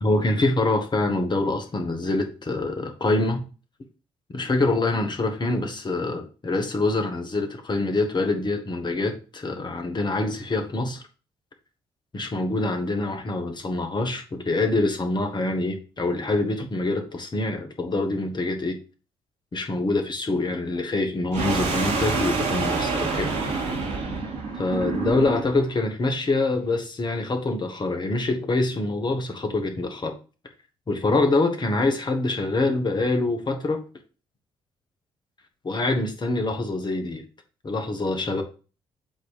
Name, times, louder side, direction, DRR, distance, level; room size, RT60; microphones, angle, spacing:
voice 1, 0.0-3.4 4.3-11.0 12.1-18.8 19.5-23.3 24.6-30.1 30.9-33.8 35.6-37.2 37.6-38.4, left 2 dB, 35° left, 5 dB, 1.6 m, -25 dB
sound 1, 21.3-25.6, right 4 dB, 60° right, 1.8 m, -27 dB
8.1 x 3.2 x 5.1 m, 0.35 s
figure-of-eight pair, 40°, 13 cm